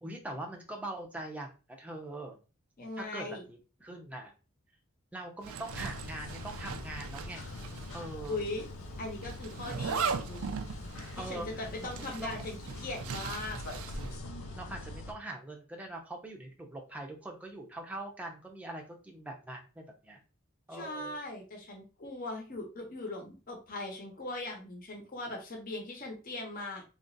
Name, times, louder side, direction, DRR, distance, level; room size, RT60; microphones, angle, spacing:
voice 1, 0.0-2.4 3.0-4.3 5.1-7.4 7.9-8.4 11.2-12.4 13.7-13.8 14.6-20.2 20.7-21.2, right 1 dB, 5° right, 1 dB, 0.6 m, -42 dB
voice 2, 2.8-3.4 8.3-8.7 9.0-10.6 11.1-13.6 20.7-26.8, left 2 dB, 40° left, 1 dB, 0.9 m, -40 dB
Zipper (clothing), 5.4-8.0 8.2-8.3 9.2-14.2, right 6 dB, 75° right, 0.4 m, -39 dB
sound 1, 5.7-15.1, left 2 dB, 70° left, 0.7 m, -43 dB
2.9 x 2.4 x 3.9 m, 0.33 s
head